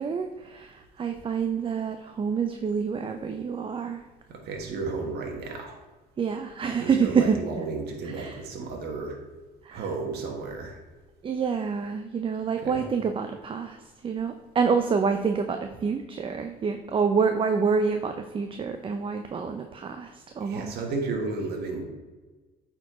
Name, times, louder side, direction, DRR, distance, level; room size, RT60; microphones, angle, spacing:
voice 1, 0.0-4.0 6.2-7.4 8.0-8.4 9.6-9.8 11.2-13.8 14.0-20.7, right 5 dB, 30° right, 6 dB, 0.6 m, -27 dB
voice 2, 4.3-5.8 6.8-9.2 9.7-10.8 12.6-12.8 20.4-21.8, right 3 dB, 70° right, 1 dB, 1.5 m, -33 dB
8.8 x 4.4 x 4.3 m, 1.3 s
cardioid pair, 110°, 17 cm